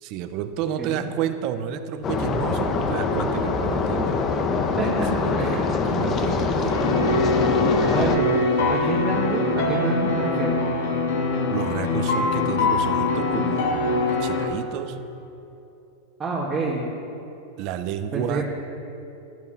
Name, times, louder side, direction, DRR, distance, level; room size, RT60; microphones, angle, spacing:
voice 1, 0.0-4.3 4.8-4.9 5.2-6.8 7.9-8.1 11.5-15.0 17.6-18.5, right 9 dB, 50° right, 10 dB, 0.9 m, -31 dB
sound 1, 2.0-8.2, left 4 dB, 35° left, 1.3 m, -24 dB
voice 2, 4.8-6.0 7.9-10.6 16.2-16.9 18.1-18.4, right 3 dB, 20° right, -5 dB, 2.0 m, -28 dB
sound 2, 6.7-14.4, left 3 dB, 70° left, 2.2 m, -23 dB
13.0 x 11.0 x 5.9 m, 2.9 s
hypercardioid pair, 110°, 0 cm